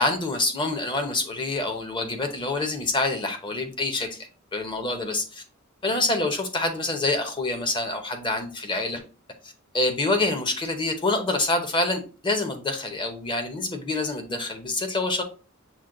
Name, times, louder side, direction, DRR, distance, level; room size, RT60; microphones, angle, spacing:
voice 1, 0.0-5.4 5.8-9.0 9.4-15.2, left 2 dB, 25° left, 5 dB, 0.8 m, -26 dB
6.1 x 2.2 x 3.7 m, 0.35 s
head